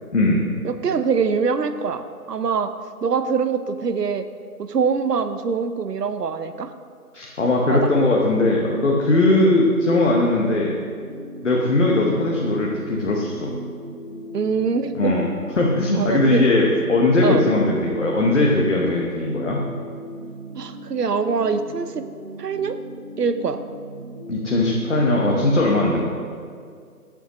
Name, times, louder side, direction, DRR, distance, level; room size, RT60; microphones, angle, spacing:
voice 1, 0.1-0.5 7.1-10.7 11.4-13.5 15.0-15.3 15.6-19.6 24.3-26.0, left 2 dB, 50° left, -3 dB, 1.2 m, -19 dB
voice 2, 0.6-2.7 3.0-4.3 4.6-6.7 7.7-7.9 9.3-9.5 14.3-15.2 16.0-16.5 17.2-17.4 20.6-22.1 22.4-22.8 23.2-23.6, right 5 dB, 85° right, 10 dB, 0.8 m, -24 dB
sound 1, 10.4-25.3, right 1 dB, 45° right, 1.0 m, -38 dB
14.5 x 7.1 x 3.0 m, 2.2 s
figure-of-eight pair, 170°, 47 cm